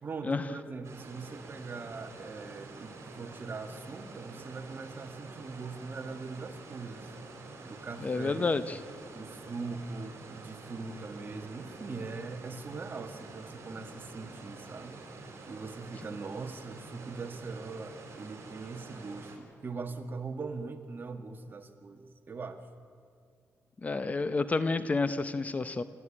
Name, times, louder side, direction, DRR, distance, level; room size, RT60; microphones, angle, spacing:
voice 1, 0.0-7.1 7.6-8.5 9.1-15.0 15.5-22.6, right 4 dB, 40° right, 5 dB, 1.8 m, -41 dB
sound 1, 0.8-19.4, right 3 dB, 55° right, 4.6 m, -48 dB
voice 2, 8.0-8.8 23.8-25.8, left 3 dB, 30° left, 12 dB, 0.7 m, -29 dB
28.0 x 13.5 x 8.7 m, 2.2 s
cardioid pair, 110°, 5 cm